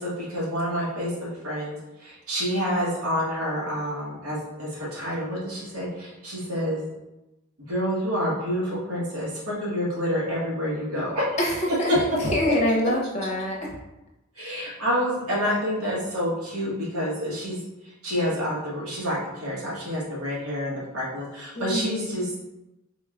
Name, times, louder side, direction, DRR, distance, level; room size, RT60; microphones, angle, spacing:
voice 1, 0.0-6.8 7.7-11.3 11.7-11.8 12.3-12.4 14.4-17.6 18.0-22.4, equal, 90° right, -6 dB, 1.3 m, -28 dB
voice 2, 11.4-11.9 12.2-13.7 21.5-22.1, left 1 dB, 30° left, -2 dB, 0.7 m, -25 dB
3.7 x 2.3 x 3.6 m, 0.96 s
head